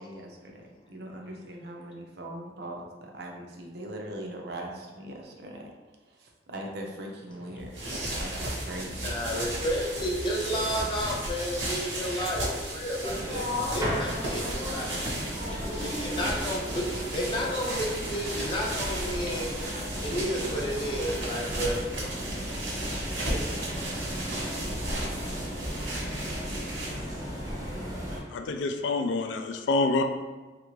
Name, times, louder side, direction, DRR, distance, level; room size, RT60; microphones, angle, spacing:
voice 1, 0.0-5.7 6.1-7.8 8.2-9.2, right 1 dB, 60° right, 1 dB, 0.5 m, -40 dB
sound 1, 7.6-27.2, right 1 dB, 80° right, 0.9 m, -35 dB
voice 2, 9.0-15.0 15.7-19.6 20.0-21.8 23.2-23.4, equal, 25° left, -2 dB, 0.5 m, -32 dB
sound 2, 13.0-28.2, equal, 20° right, 0.6 m, -35 dB
voice 3, 28.3-30.0, left 3 dB, 80° left, 6 dB, 0.3 m, -27 dB
3.4 x 2.4 x 3.1 m, 1.3 s
head